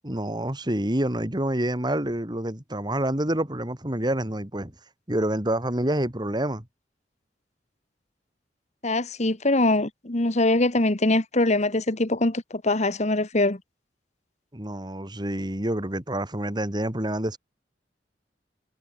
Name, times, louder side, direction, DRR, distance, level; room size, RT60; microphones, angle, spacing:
voice 1, 0.0-4.7 5.1-6.7 14.5-17.4, right 1 dB, 25° right, 2.8 m, -27 dB
voice 2, 8.8-13.6, left 2 dB, 40° left, 1.8 m, -23 dB
head